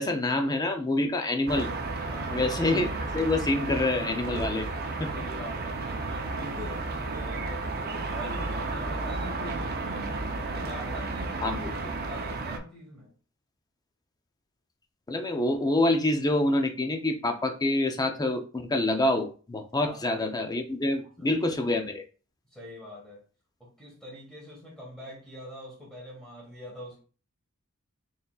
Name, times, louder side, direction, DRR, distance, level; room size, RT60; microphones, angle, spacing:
voice 1, 0.0-1.7 2.3-4.7 5.0-5.2 11.4-11.7 15.1-22.0, left 2 dB, 20° left, 0.5 m, -27 dB
sound 1, 1.5-12.6, right 3 dB, 45° right, 0.6 m, -33 dB
voice 2, 2.1-2.4 5.1-10.1 10.4-13.1 19.8-20.0 21.2-21.4 22.5-23.2 23.6-27.0, left 1 dB, 5° left, 1.5 m, -44 dB
4.1 x 3.9 x 2.3 m
head